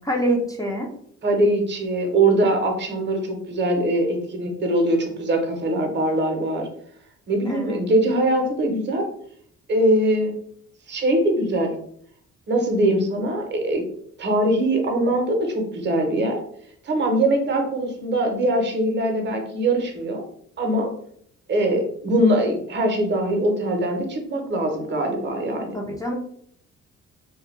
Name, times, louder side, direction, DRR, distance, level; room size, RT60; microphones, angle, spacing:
voice 1, 0.0-0.9 7.5-7.8 25.7-26.1, right 1 dB, 10° left, -1 dB, 0.5 m, -25 dB
voice 2, 1.2-6.7 7.3-9.1 9.7-10.3 10.9-11.8 12.5-13.8 14.2-16.4 16.8-20.2 20.6-20.9 21.5-25.8, right 1 dB, 35° right, 3 dB, 0.7 m, -22 dB
2.2 x 2.2 x 3.1 m, 0.65 s
cardioid pair, 90°, 30 cm